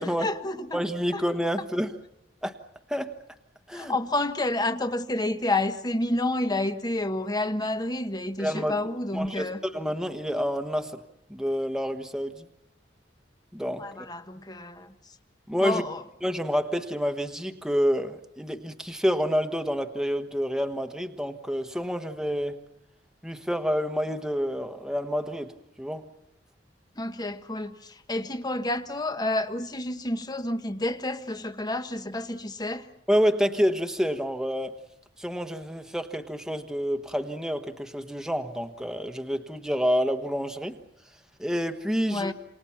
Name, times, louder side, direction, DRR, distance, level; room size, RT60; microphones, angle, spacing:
voice 1, 0.2-0.8 1.1-1.2 3.7-9.6 13.8-14.9 15.6-16.0 27.0-32.9 42.1-42.3, left 2 dB, 20° left, 1.3 m, -29 dB
voice 2, 0.7-1.9 2.4-2.6 2.9-3.1 3.7-4.0 8.4-8.8 9.1-11.0 11.3-12.5 13.5-13.9 15.5-15.8 16.2-22.6 23.2-26.1 33.1-34.8 35.2-40.8 41.4-42.3, equal, 5° right, 1.3 m, -28 dB
28.0 x 27.5 x 5.9 m
head